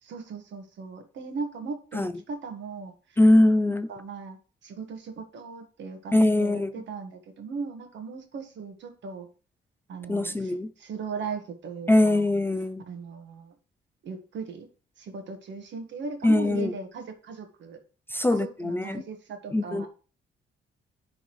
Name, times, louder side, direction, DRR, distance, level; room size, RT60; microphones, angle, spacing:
voice 1, 0.0-2.9 3.9-4.4 4.6-9.3 9.9-12.3 12.9-13.5 14.0-14.7 15.0-17.8 18.3-19.9, right 4 dB, 65° right, 1.6 m, -38 dB
voice 2, 3.2-3.9 6.1-6.7 10.1-10.7 11.9-12.8 16.2-16.7 18.1-19.0 19.5-19.9, left 1 dB, 10° left, 0.4 m, -22 dB
10.5 x 3.9 x 3.2 m
cardioid pair, 90°, 20 cm